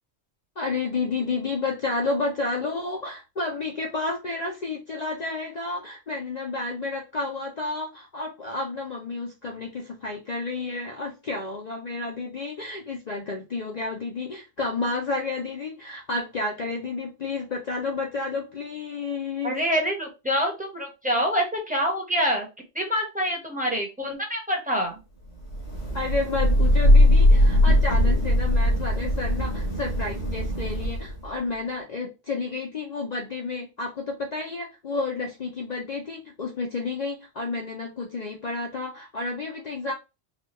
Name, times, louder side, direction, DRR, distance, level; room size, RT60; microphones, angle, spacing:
voice 1, 0.6-19.6 25.9-39.9, left 3 dB, 45° left, 0.6 m, -31 dB
voice 2, 19.4-22.5 22.7-25.0, equal, 10° right, 0.8 m, -26 dB
Thunder / Rain, 25.5-31.3, left 1 dB, 80° left, 1.7 m, -20 dB
4.1 x 2.3 x 2.9 m
omnidirectional pair, 1.1 m